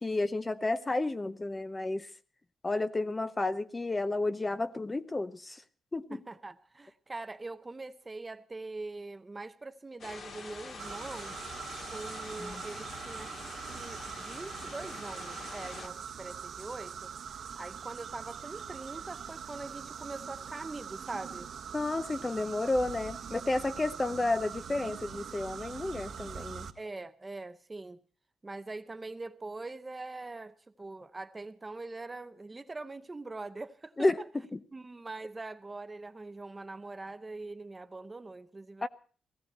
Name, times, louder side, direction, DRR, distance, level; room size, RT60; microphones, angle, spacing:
voice 1, 0.0-2.1 2.6-5.6 5.9-6.2 12.4-12.6 21.7-26.7 34.0-34.2 34.5-34.6 38.8-38.9, left 2 dB, 15° left, 0.7 m, -31 dB
voice 2, 6.1-11.4 11.9-13.4 13.7-17.1 17.6-21.5 26.8-28.0 28.4-34.3 34.7-38.9, right 3 dB, 20° right, 0.7 m, -43 dB
sound 1, 10.0-15.9, left 4 dB, 55° left, 2.4 m, -45 dB
sound 2, 10.8-26.7, right 7 dB, 60° right, 1.3 m, -43 dB
17.5 x 16.0 x 4.3 m
wide cardioid pair, 150°, 0 cm